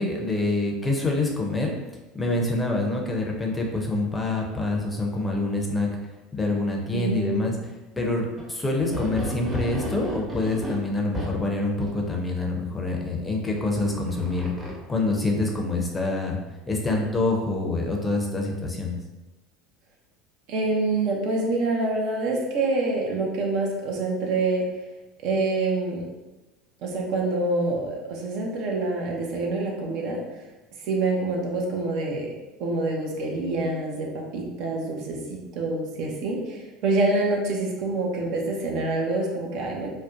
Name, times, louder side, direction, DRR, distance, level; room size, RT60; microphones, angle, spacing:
voice 1, 0.0-1.7 2.1-5.9 6.3-7.6 8.0-16.4 16.7-19.0, left 2 dB, 15° left, 0 dB, 0.5 m, -26 dB
voice 2, 6.9-7.5 20.5-24.6 25.2-26.0 26.8-30.2 30.8-32.3 32.6-39.9, right 2 dB, 60° right, -1 dB, 0.5 m, -26 dB
sound 1, 8.4-8.5 8.8-11.4 11.8-11.9 13.6-14.8, equal, 25° right, 0.8 m, -33 dB
2.5 x 2.1 x 2.4 m, 1.1 s
hypercardioid pair, 75°, 0 cm